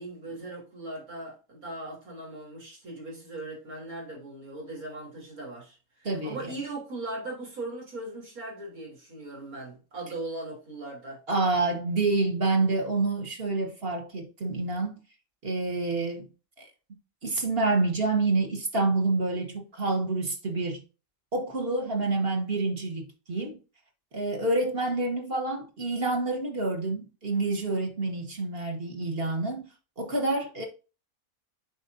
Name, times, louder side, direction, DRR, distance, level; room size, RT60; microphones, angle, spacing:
voice 1, 0.0-11.2, right 2 dB, 80° right, 3.7 m, -39 dB
voice 2, 6.0-6.5 11.3-15.0 15.4-16.3 16.6-16.7 17.2-20.8 21.3-23.6 24.1-29.7 30.0-30.7, right 3 dB, 40° right, 1.7 m, -28 dB
8.3 x 5.2 x 2.7 m
omnidirectional pair, 1.5 m